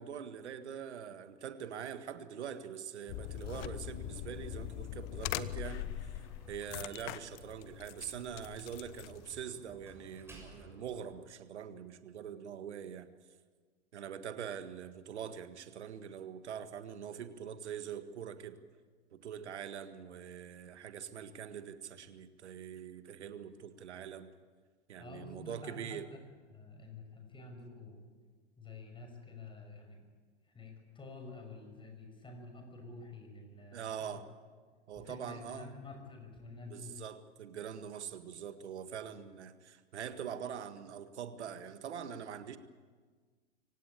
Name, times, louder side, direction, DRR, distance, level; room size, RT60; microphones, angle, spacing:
voice 1, 0.0-5.9 6.5-13.1 13.9-18.6 19.1-24.3 24.9-26.1 33.7-34.2 34.9-35.7 36.7-42.6, right 8 dB, 70° right, 10 dB, 1.7 m, -43 dB
sound 1, 3.1-9.4, left 15 dB, 40° left, 1.0 m, -42 dB
Slam, 5.1-11.3, right 2 dB, 5° right, 6.9 m, -56 dB
voice 2, 25.0-26.2 26.5-28.1 28.6-30.0 30.5-33.9 35.0-37.0, left 3 dB, 15° left, 4 dB, 6.3 m, -49 dB
25.0 x 17.0 x 8.6 m, 1.5 s
hypercardioid pair, 100°, 35 cm